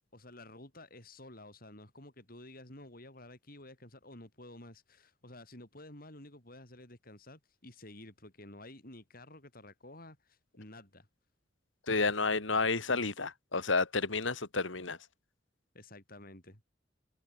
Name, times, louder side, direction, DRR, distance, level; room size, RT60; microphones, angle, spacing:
voice 1, 0.1-11.1 15.7-16.6, left 1 dB, 50° left, 7.9 m, -52 dB
voice 2, 11.9-15.0, left 3 dB, 85° left, 2.6 m, -30 dB
head